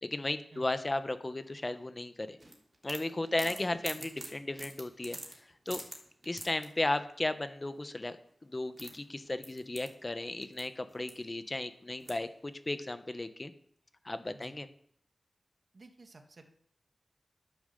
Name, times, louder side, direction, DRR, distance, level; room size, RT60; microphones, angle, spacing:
voice 1, 0.0-2.4 2.8-5.2 5.7-5.8 6.3-8.2 8.4-13.5 14.0-14.7, left 2 dB, 30° left, 10 dB, 1.0 m, -35 dB
sound 1, 2.4-6.7 8.3-8.4 8.5-10.6 10.9-11.5 12.0-12.4, right 1 dB, 25° right, 3.1 m, -45 dB
voice 2, 3.4-4.1 14.3-14.5 15.7-16.5, right 2 dB, 55° right, 5 dB, 1.6 m, -52 dB
11.5 x 7.0 x 6.7 m, 0.67 s
wide cardioid pair, 65°, 0 cm